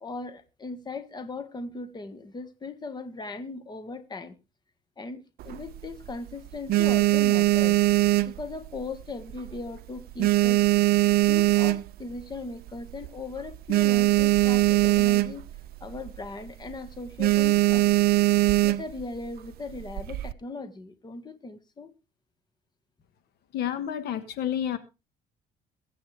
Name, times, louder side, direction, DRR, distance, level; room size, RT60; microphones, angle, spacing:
voice 1, 0.0-4.4 5.0-7.8 8.3-10.7 11.3-15.4 15.8-17.9 18.6-21.9, left 3 dB, 25° left, 1.6 m, -38 dB
sound 1, 5.4-6.1 6.5-9.0 9.3-9.7 10.0-12.2 12.7-12.8 13.0-13.1 13.4-15.6 15.9-16.2 16.5-16.7 17.2-19.0 19.7-20.3, right 17 dB, 65° right, 0.6 m, -21 dB
voice 2, 23.5-24.8, left 10 dB, 70° left, 1.6 m, -29 dB
23.0 x 8.4 x 3.4 m
cardioid pair, 110°, 17 cm